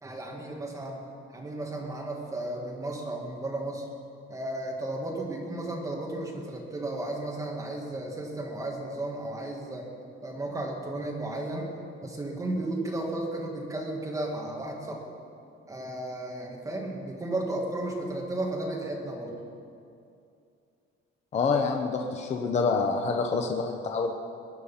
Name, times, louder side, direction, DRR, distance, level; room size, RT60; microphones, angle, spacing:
voice 1, 0.0-1.0 1.3-3.9 4.3-9.9 10.2-11.7 12.0-15.1 15.7-19.3, right 1 dB, 15° right, -1 dB, 2.0 m, -34 dB
voice 2, 21.3-24.1, left 4 dB, 30° left, 3 dB, 0.8 m, -27 dB
22.0 x 9.5 x 5.7 m, 2.5 s
cardioid pair, 175°, 21 cm